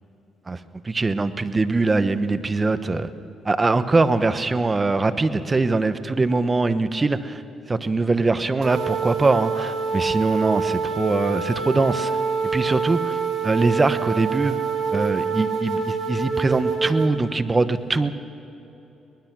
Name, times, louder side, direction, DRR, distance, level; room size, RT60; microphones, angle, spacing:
voice 1, 0.8-3.1 3.4-7.4 7.7-12.1 12.5-13.2 13.4-14.6 14.9-18.1, right 3 dB, 25° right, 12 dB, 1.0 m, -22 dB
sound 1, 8.6-17.1, right 5 dB, 75° right, 2.6 m, -26 dB
22.5 x 19.5 x 6.1 m, 2.9 s
cardioid pair, 90°, 0 cm